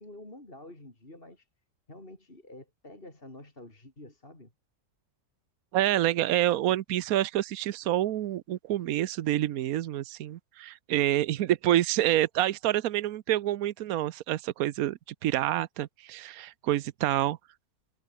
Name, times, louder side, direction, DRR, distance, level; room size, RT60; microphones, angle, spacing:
voice 1, 0.0-1.5 1.9-4.5, left 1 dB, 40° left, 5.1 m, -48 dB
voice 2, 5.7-17.4, right 13 dB, 75° right, 1.2 m, -27 dB
omnidirectional pair, 1.5 m